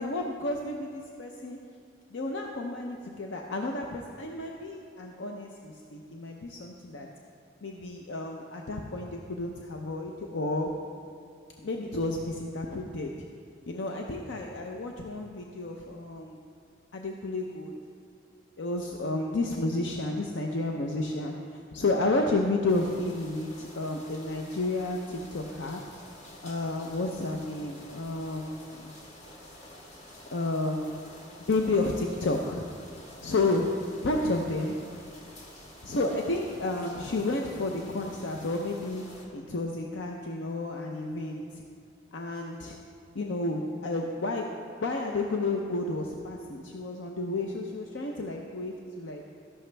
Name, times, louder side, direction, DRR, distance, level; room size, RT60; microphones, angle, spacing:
voice 1, 0.0-1.6 2.1-7.1 7.6-10.7 11.6-13.1 13.7-16.4 16.9-17.7 18.6-25.8 26.4-28.9 30.3-31.0 31.5-32.7 33.2-34.8 35.8-39.0 39.3-41.6 42.1-42.8 43.1-44.5 44.8-49.2, left 2 dB, 80° left, 1 dB, 0.7 m, -31 dB
sound 1, 22.7-39.3, left 1 dB, 40° left, 1.7 m, -49 dB
13.5 x 11.0 x 3.4 m, 2.3 s
head